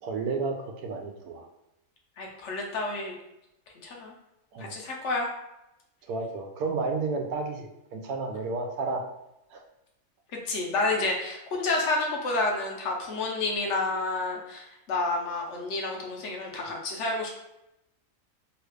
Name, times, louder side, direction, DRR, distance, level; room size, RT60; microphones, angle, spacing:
voice 1, 0.0-1.5 4.5-4.8 6.1-9.0 9.5-9.6, right 4 dB, 80° right, 3 dB, 1.1 m, -32 dB
voice 2, 2.2-3.1 3.8-4.1 4.6-5.3 10.5-17.3, left 2 dB, 60° left, 0 dB, 0.9 m, -29 dB
3.0 x 2.4 x 3.1 m, 0.87 s
omnidirectional pair, 1.6 m